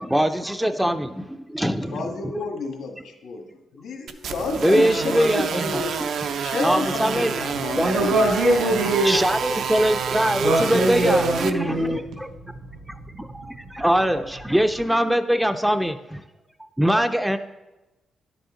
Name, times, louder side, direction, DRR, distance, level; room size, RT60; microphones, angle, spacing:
voice 1, 0.0-2.4 4.6-6.1 6.6-7.9 9.0-11.9 12.2-12.3 13.2-16.2 16.8-17.4, equal, 5° right, 0.4 m, -23 dB
voice 2, 1.8-6.0 6.4-8.8, left 3 dB, 80° left, 1.6 m, -30 dB
sound 1, 4.1-11.5, right 7 dB, 70° right, 0.5 m, -28 dB
voice 3, 7.8-9.2 10.4-13.7, right 1 dB, 85° right, 3.8 m, -23 dB
10.5 x 7.9 x 3.7 m
cardioid pair, 135°, 0 cm